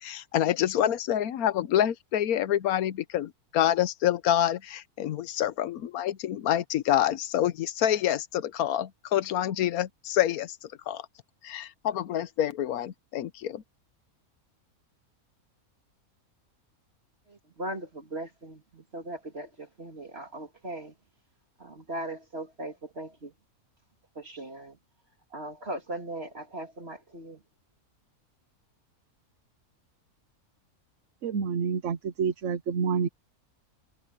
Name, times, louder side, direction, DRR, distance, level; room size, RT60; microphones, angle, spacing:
voice 1, 0.0-10.6 10.9-11.0 11.4-13.6, left 11 dB, 80° left, 1.3 m, -27 dB
voice 2, 17.3-20.9 21.6-23.3 24.1-24.8 25.3-27.4, right 1 dB, 45° right, 2.9 m, -39 dB
voice 3, 31.2-33.1, right 6 dB, 60° right, 1.1 m, -28 dB
omnidirectional pair, 1.5 m